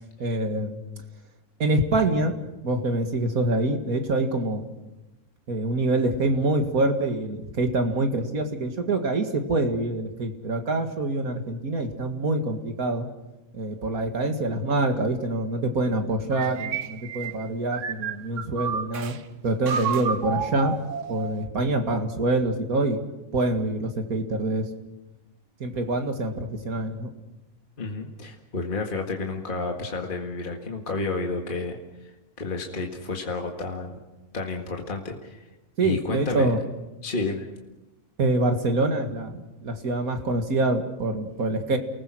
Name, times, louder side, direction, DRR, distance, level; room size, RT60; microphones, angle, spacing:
voice 1, 0.2-0.8 1.6-2.3 2.6-4.6 5.5-13.1 13.5-19.2 19.4-20.7 21.1-23.0 23.3-24.6 25.6-27.1 35.8-36.6 38.2-41.8, right 2 dB, 85° right, 6 dB, 2.4 m, -25 dB
sound 1, 16.3-19.2 19.7-21.4, right 7 dB, 60° right, 1.3 m, -31 dB
voice 2, 27.8-32.1 32.4-34.0 34.3-35.4 35.8-36.5 37.0-37.5, left 3 dB, 35° left, 2 dB, 2.0 m, -31 dB
29.5 x 19.5 x 6.3 m, 1.0 s
omnidirectional pair, 1.5 m